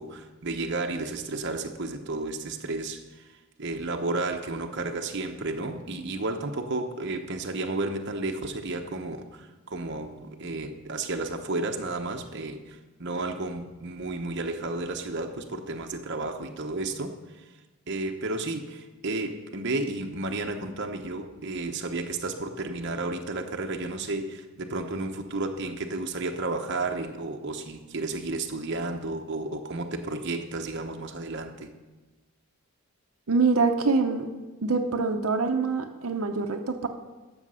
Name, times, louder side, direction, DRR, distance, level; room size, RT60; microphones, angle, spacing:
voice 1, 0.0-3.3 3.6-17.1 17.9-31.7, right 2 dB, 55° right, 4 dB, 0.9 m, -32 dB
voice 2, 33.3-34.3 34.6-36.9, right 4 dB, 80° right, 4 dB, 0.8 m, -25 dB
12.5 x 7.2 x 5.6 m, 1.2 s
head